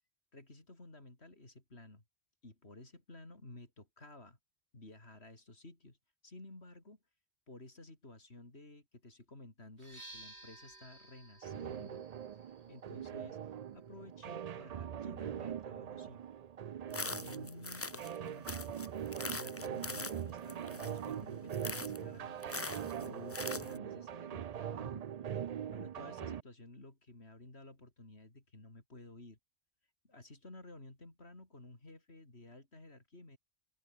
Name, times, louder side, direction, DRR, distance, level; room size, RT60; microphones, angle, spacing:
voice 1, 0.3-2.0 2.4-4.4 4.7-6.0 6.2-7.0 7.5-12.0 12.7-16.2 16.9-18.7 19.2-25.0 25.7-29.4 30.0-33.4, left 2 dB, 70° left, 5.0 m, -53 dB
sound 1, 9.7-17.5, right 2 dB, 75° right, 5.9 m, -59 dB
sound 2, 11.4-26.4, right 9 dB, 50° right, 0.5 m, -42 dB
sound 3, 16.9-18.2 18.4-21.1 21.5-22.0 22.4-23.8, left 3 dB, 20° left, 0.4 m, -42 dB
open air
omnidirectional pair, 1.1 m